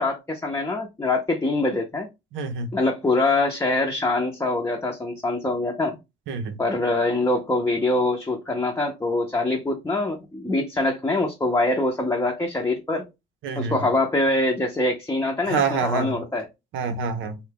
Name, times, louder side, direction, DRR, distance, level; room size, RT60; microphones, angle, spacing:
voice 1, 0.0-2.1 2.7-6.0 6.6-13.0 13.6-16.5, left 2 dB, 15° left, 0.5 m, -24 dB
voice 2, 2.3-2.7 6.3-6.6 13.4-13.9 15.5-16.2 16.7-17.4, right 5 dB, 80° right, 0.7 m, -27 dB
2.6 x 2.2 x 3.4 m
cardioid pair, 90°, 20 cm